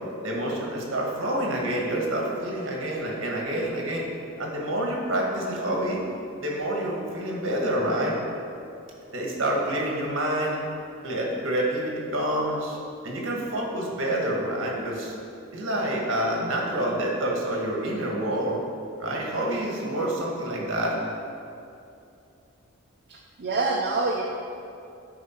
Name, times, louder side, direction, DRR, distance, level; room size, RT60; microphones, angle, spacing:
voice 1, 0.2-4.1 4.4-6.0 6.4-8.2 9.1-10.6 11.0-12.8 13.0-15.1 15.5-18.6 19.0-21.0, right 1 dB, 65° right, -2 dB, 1.5 m, -27 dB
voice 2, 23.1-24.2, right 3 dB, 45° right, -1 dB, 0.5 m, -26 dB
9.5 x 4.5 x 4.4 m, 2.6 s
head